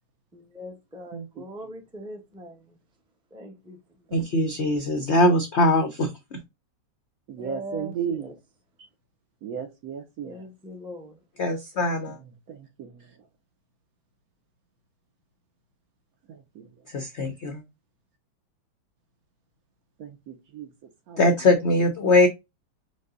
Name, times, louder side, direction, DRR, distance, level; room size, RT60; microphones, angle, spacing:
voice 1, 0.3-2.8 3.3-3.8 7.4-8.3 10.2-11.2, equal, 5° right, 0.4 m, -41 dB
voice 2, 1.1-1.5 4.1-4.5 7.3-8.3 9.4-10.4 12.5-13.0 16.3-16.7 20.0-20.7 21.1-21.2, right 7 dB, 65° right, 1.0 m, -35 dB
voice 3, 4.1-6.4 11.4-12.2 16.9-17.6 21.2-22.3, left 2 dB, 75° left, 0.6 m, -22 dB
5.2 x 2.1 x 3.7 m
omnidirectional pair, 2.0 m